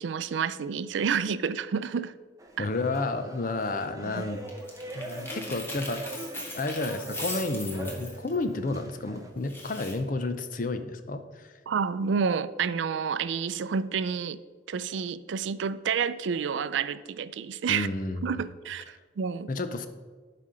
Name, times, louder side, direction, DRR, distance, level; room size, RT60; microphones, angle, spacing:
voice 1, 0.0-2.1 2.6-2.7 4.0-4.2 11.7-14.4 14.7-17.9 18.2-19.5, right 6 dB, 75° right, 15 dB, 0.4 m, -29 dB
sound 1, 2.4-9.3, right 1 dB, 15° right, 0.8 m, -43 dB
voice 2, 2.6-4.4 4.9-6.0 6.5-11.5 17.7-18.4 19.5-19.9, left 2 dB, 45° left, 9 dB, 0.6 m, -31 dB
sound 2, 4.5-8.4 9.4-9.9, left 1 dB, 10° left, 1.3 m, -39 dB
11.5 x 4.3 x 5.0 m, 1.4 s
head